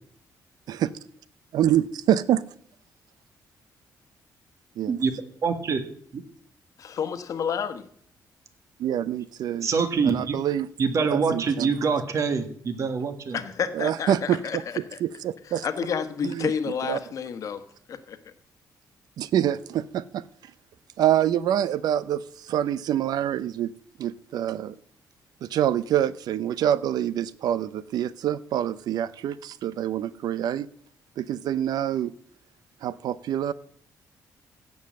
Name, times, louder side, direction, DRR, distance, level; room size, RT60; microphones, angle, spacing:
voice 1, 1.5-2.4 4.8-4.9 8.8-9.7 10.0-10.7 11.1-11.7 13.7-15.7 16.2-16.5 16.8-17.0 19.2-20.2 21.0-23.7 24.0-24.8 25.4-30.7 31.2-32.1 32.8-33.5, right 11 dB, 75° right, 0.6 m, -26 dB
voice 2, 5.4-5.8 6.1-6.2 9.6-10.4 10.8-13.4, right 5 dB, 50° right, 1.7 m, -25 dB
voice 3, 6.8-7.9 13.3-14.6 15.6-17.6 17.9-18.2, left 7 dB, 55° left, 1.2 m, -30 dB
16.0 x 5.5 x 7.7 m
cardioid pair, 130°, 7 cm